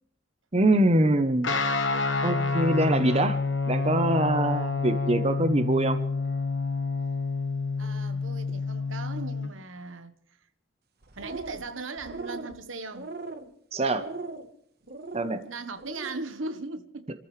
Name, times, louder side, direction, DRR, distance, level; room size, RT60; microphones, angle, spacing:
voice 1, 0.5-1.5 2.2-3.4 3.7-6.0 13.7-14.0 15.1-15.4, right 1 dB, 30° right, 0.9 m, -24 dB
Guitar, 1.4-9.5, left 4 dB, 70° left, 1.3 m, -28 dB
voice 2, 7.8-10.1 11.2-13.1 15.4-17.1, right 3 dB, 85° right, 1.2 m, -38 dB
sound 1, 11.0-11.7 12.0-12.5 12.9-13.5 14.0-14.5 14.9-15.3 15.8-16.2, right 3 dB, 55° right, 1.3 m, -38 dB
29.0 x 14.0 x 3.3 m
head